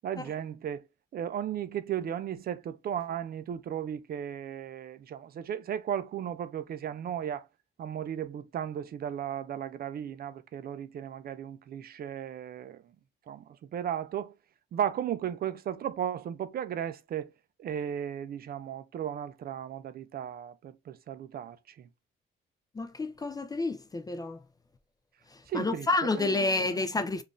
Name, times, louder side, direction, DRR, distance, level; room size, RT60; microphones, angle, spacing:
voice 1, 0.0-0.8 1.1-7.5 7.8-12.8 13.3-14.3 14.7-17.3 17.6-21.9 25.5-26.9, right 9 dB, 50° right, 0.4 m, -35 dB
voice 2, 22.8-24.4 25.5-27.2, left 3 dB, 20° left, 0.4 m, -29 dB
3.6 x 2.4 x 2.5 m
cardioid pair, 90°, 20 cm